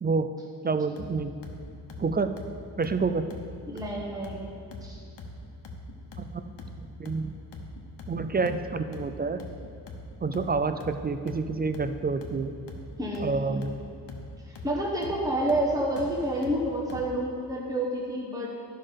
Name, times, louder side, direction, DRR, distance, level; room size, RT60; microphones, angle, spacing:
voice 1, 0.6-1.3 2.0-2.3 2.8-3.3 6.2-6.5 7.0-7.3 8.1-9.4 10.2-12.5 13.2-13.7, right 4 dB, 25° right, 9 dB, 0.3 m, -28 dB
sound 1, 1.0-17.2, left 2 dB, 85° left, 1.1 m, -43 dB
voice 2, 3.7-4.5 4.8-5.0 13.0-13.6 14.5-18.5, right 1 dB, 10° right, -4 dB, 1.0 m, -29 dB
12.0 x 5.6 x 5.2 m, 2.4 s
wide cardioid pair, 125°, 41 cm